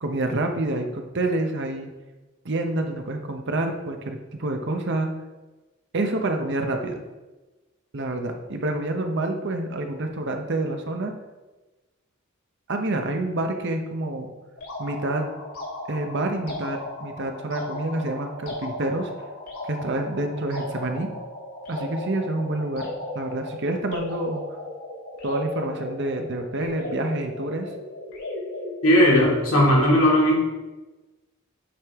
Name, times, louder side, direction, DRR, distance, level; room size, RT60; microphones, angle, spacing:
voice 1, 0.0-1.9 2.4-5.1 5.9-6.9 7.9-11.1 12.7-14.3 14.8-15.3 15.9-19.1 19.6-21.1 21.7-24.4 25.2-27.7, right 2 dB, 55° right, 4 dB, 0.8 m, -28 dB
sound 1, 14.6-29.8, left 1 dB, 90° left, 2.6 m, -36 dB
voice 2, 28.8-30.4, left 1 dB, 75° left, -4 dB, 2.4 m, -17 dB
8.7 x 5.2 x 3.6 m, 1.2 s
head